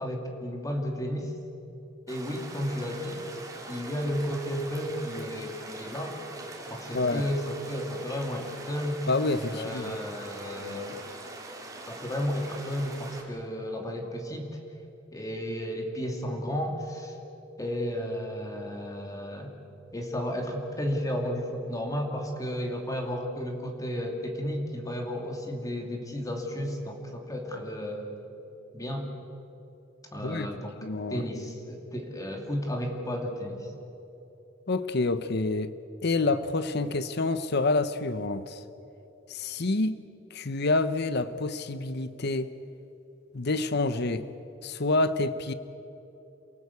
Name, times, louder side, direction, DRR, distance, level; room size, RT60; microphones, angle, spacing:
voice 1, 0.0-1.3 2.1-3.2 3.7-6.2 6.7-9.0 9.5-11.0 11.9-14.6 15.1-17.1 17.6-19.5 19.9-28.2 28.7-29.1 30.1-30.8 31.1-33.7, equal, 20° left, 2 dB, 2.5 m, -33 dB
sound 1, 2.1-13.2, right 2 dB, 20° right, 3.4 m, -43 dB
voice 2, 6.9-7.3 9.1-10.0 30.2-30.5 30.8-31.2 34.7-35.7 36.0-38.6 39.3-40.0 40.3-42.5 43.3-44.3 44.6-45.5, left 2 dB, 60° left, 13 dB, 0.9 m, -27 dB
28.0 x 18.0 x 8.3 m, 3.0 s
head